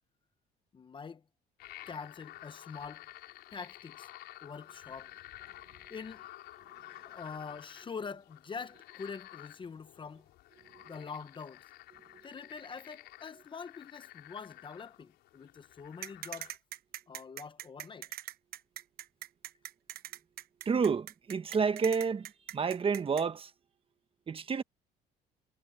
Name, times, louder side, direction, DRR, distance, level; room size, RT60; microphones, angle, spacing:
voice 1, 0.7-1.2 1.9-3.0 3.5-4.1 4.4-5.1 5.9-6.2 7.0-10.2 10.8-11.6 12.2-16.5 17.1-18.1, left 5 dB, 30° left, 0.9 m, -44 dB
sound 1, 1.6-16.6, left 16 dB, 85° left, 5.4 m, -52 dB
voice 2, 10.6-10.9 20.6-23.5 24.3-24.6, right 5 dB, 35° right, 1.3 m, -30 dB
sound 2, 16.0-23.2, right 12 dB, 65° right, 1.0 m, -42 dB
cardioid pair, 110°, 17 cm